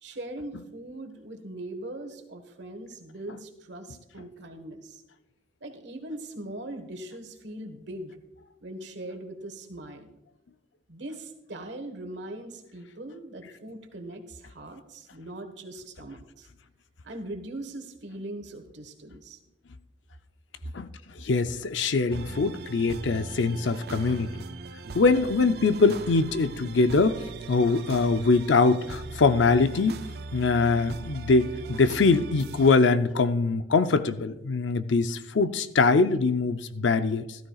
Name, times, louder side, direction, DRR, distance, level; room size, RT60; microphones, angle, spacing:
voice 1, 0.0-5.0 5.6-8.2 8.6-10.1 10.9-16.5 17.0-19.4, right 1 dB, 70° right, 5 dB, 1.4 m, -40 dB
voice 2, 21.2-24.4 24.9-27.2 27.5-30.0 30.3-37.3, left 4 dB, 75° left, 11 dB, 0.5 m, -23 dB
sound 1, 22.1-32.7, right 3 dB, 55° right, 0.4 m, -40 dB
14.0 x 13.0 x 2.4 m, 0.92 s
head